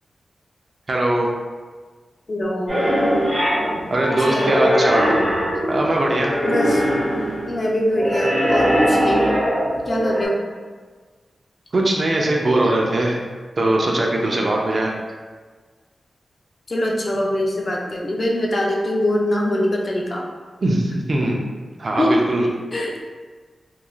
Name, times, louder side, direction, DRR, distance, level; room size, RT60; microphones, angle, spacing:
voice 1, 0.9-1.3 3.9-5.1 5.7-6.4 11.7-13.2 13.6-14.9 20.6-21.4 21.8-22.5, right 1 dB, 40° right, -1 dB, 0.4 m, -20 dB
voice 2, 2.3-2.9 4.1-4.6 6.4-6.8 7.5-9.3 9.9-10.4 16.7-20.2 22.0-22.2 22.7-23.0, left 1 dB, 35° left, -1 dB, 0.3 m, -22 dB
sound 1, 2.7-10.3, equal, 80° right, 1.5 m, -21 dB
3.0 x 2.3 x 2.4 m, 1.4 s
wide cardioid pair, 160°, 0 cm